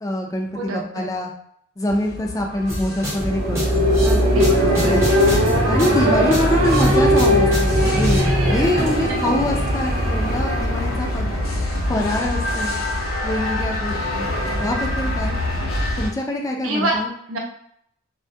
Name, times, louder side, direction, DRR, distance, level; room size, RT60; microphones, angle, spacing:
voice 1, 0.0-1.3 1.8-3.9 4.8-5.0 5.3-11.3 11.9-12.7 13.2-14.3 14.6-15.4 16.0-17.1, left 1 dB, 15° left, 1 dB, 0.3 m, -25 dB
voice 2, 0.5-1.1 4.0-5.0 8.1-8.9 16.6-17.0 17.3-17.4, right 1 dB, 90° right, -1 dB, 0.7 m, -27 dB
sound 1, 1.9-16.1, left 1 dB, 85° left, 0.6 m, -26 dB
sound 2, 2.7-8.2, equal, 15° right, 0.7 m, -28 dB
sound 3, 3.0-11.6, equal, 35° right, 1.0 m, -19 dB
2.2 x 2.1 x 2.6 m, 0.69 s
head